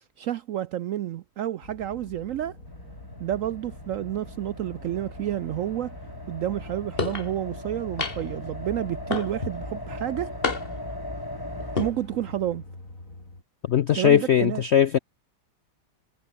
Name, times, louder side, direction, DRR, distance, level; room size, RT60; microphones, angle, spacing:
voice 1, 0.2-2.6 3.2-5.9 6.3-10.4 11.7-12.6 13.9-14.6, right 12 dB, 70° right, 0.7 m, -30 dB
sound 1, 1.6-13.4, left 2 dB, 50° left, 6.3 m, -44 dB
sound 2, 2.7-11.9, left 1 dB, 10° left, 5.0 m, -39 dB
sound 3, 7.0-7.3 8.0-8.4 9.1-9.6 10.4-10.9 11.6-11.9, left 4 dB, 35° left, 2.0 m, -29 dB
voice 2, 13.7-15.0, left 9 dB, 70° left, 0.6 m, -20 dB
omnidirectional pair, 1.9 m